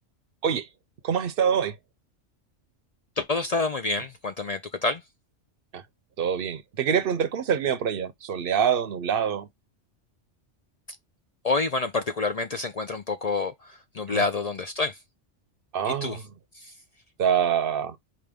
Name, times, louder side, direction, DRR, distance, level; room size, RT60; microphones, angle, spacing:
voice 1, 1.0-1.7 5.7-5.8 6.2-9.5 14.1-14.2 15.7-16.2 17.2-18.0, right 8 dB, 55° right, 0.8 m, -25 dB
voice 2, 3.2-5.0 11.4-15.0 15.8-16.2 16.5-16.7, left 3 dB, 55° left, 0.4 m, -28 dB
5.1 x 2.9 x 3.5 m
omnidirectional pair, 1.2 m